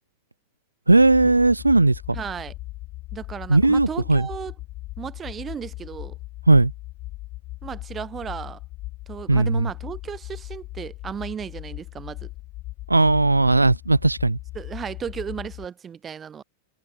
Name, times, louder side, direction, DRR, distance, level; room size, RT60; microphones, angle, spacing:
sound 1, 0.9-15.7, left 18 dB, 40° left, 3.1 m, -38 dB
voice 1, 0.9-2.0 3.5-4.3 6.5-6.7 9.3-9.7 12.9-14.4, right 2 dB, 85° right, 0.3 m, -17 dB
voice 2, 2.1-2.5 3.1-4.6 5.0-6.2 7.6-8.6 9.1-12.3 14.5-16.4, right 7 dB, 20° right, 7.3 m, -35 dB
figure-of-eight pair, 90°, 0 cm